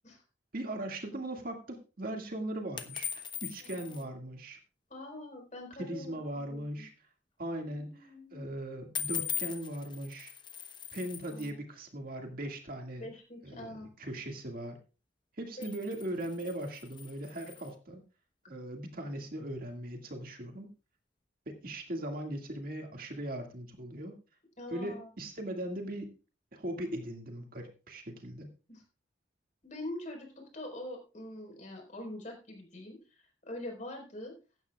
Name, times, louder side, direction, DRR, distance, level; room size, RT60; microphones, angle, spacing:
voice 1, 0.5-4.6 5.8-6.9 7.4-10.3 10.9-13.1 13.4-14.8 15.4-18.0 18.5-20.7 21.5-24.2 24.7-26.1 26.5-28.5, right 1 dB, 50° right, 3 dB, 2.0 m, -39 dB
sound 1, 2.8-4.0 9.0-11.5 15.4-17.8, left 8 dB, 25° left, 0.9 m, -40 dB
voice 2, 3.6-4.1 4.9-6.9 7.7-8.5 11.3-11.6 13.0-13.9 15.6-15.7 24.6-25.1 28.7-28.8 29.6-30.3 30.5-33.0 33.4-34.3, left 1 dB, 40° left, 2 dB, 4.3 m, -44 dB
16.0 x 12.5 x 2.3 m, 0.32 s
head